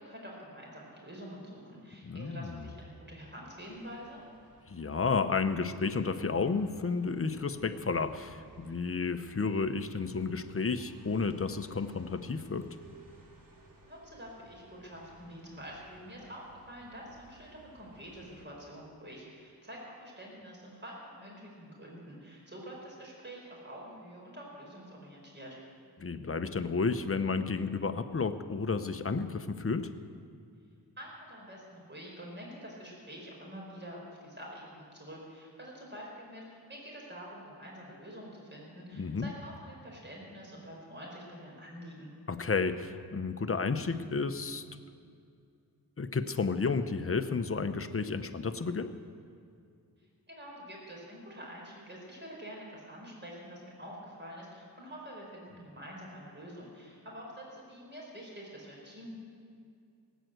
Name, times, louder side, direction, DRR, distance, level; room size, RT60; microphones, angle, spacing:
voice 1, 0.0-4.2 13.9-25.6 31.0-42.1 50.3-59.1, equal, 25° right, -2 dB, 4.7 m, -47 dB
voice 2, 2.0-2.6 4.7-12.7 26.0-29.9 38.9-39.3 42.3-44.6 46.0-48.9, left 4 dB, 35° left, 9 dB, 0.9 m, -32 dB
sound 1, 3.5-18.4, right 2 dB, 55° right, 2.9 m, -59 dB
19.0 x 9.2 x 8.0 m, 2.4 s
wide cardioid pair, 90°, 40 cm